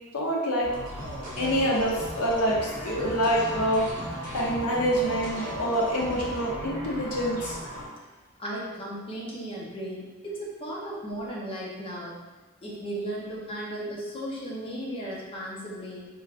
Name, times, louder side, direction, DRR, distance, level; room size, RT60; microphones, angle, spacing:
voice 1, 0.1-0.7 1.4-3.9 4.3-7.6, equal, 90° left, -3 dB, 0.9 m, -26 dB
sound 1, 0.6-7.8, right 1 dB, 40° right, 1.0 m, -36 dB
voice 2, 8.4-12.2 12.6-16.1, right 1 dB, 25° left, -5 dB, 0.8 m, -35 dB
3.8 x 3.3 x 2.5 m, 1.2 s
head